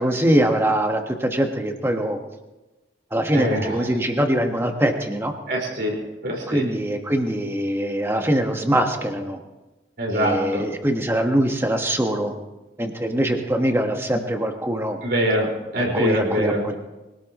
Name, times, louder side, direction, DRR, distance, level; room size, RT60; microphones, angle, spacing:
voice 1, 0.0-2.2 3.1-5.3 6.5-9.4 10.1-12.3 12.8-15.0 15.9-16.7, right 1 dB, 15° right, 3 dB, 1.5 m, -22 dB
voice 2, 3.3-3.7 5.5-5.9 6.2-6.6 10.0-10.6 15.0-16.6, equal, 60° right, -1 dB, 5.1 m, -24 dB
24.0 x 18.0 x 3.1 m, 1.1 s
head